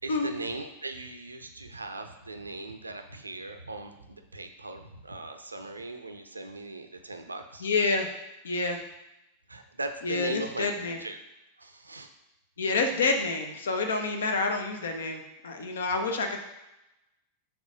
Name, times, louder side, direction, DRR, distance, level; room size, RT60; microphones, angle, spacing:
voice 1, 0.0-7.7 8.7-8.8 9.5-10.7 11.0-11.2 11.6-12.1, right 2 dB, 80° right, 7 dB, 0.5 m, -39 dB
voice 2, 7.6-8.1 8.4-8.8 10.0-11.0 12.6-16.4, left 3 dB, 65° left, 5 dB, 0.8 m, -28 dB
4.9 x 3.7 x 5.2 m, 0.94 s
figure-of-eight pair, 90°, 0 cm